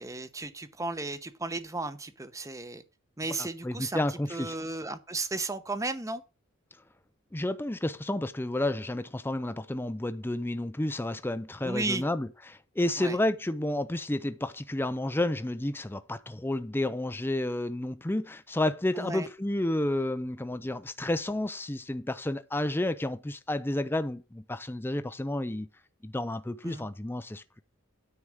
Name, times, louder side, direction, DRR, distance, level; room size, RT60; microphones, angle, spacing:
voice 1, 0.0-2.8 3.2-4.0 4.3-6.2 11.6-12.0 13.0-13.2 19.0-19.3 26.6-26.9, right 2 dB, 15° right, 0.9 m, -34 dB
voice 2, 3.4-4.6 7.3-25.7 26.0-27.6, left 1 dB, 10° left, 0.5 m, -31 dB
9.7 x 4.9 x 7.4 m
head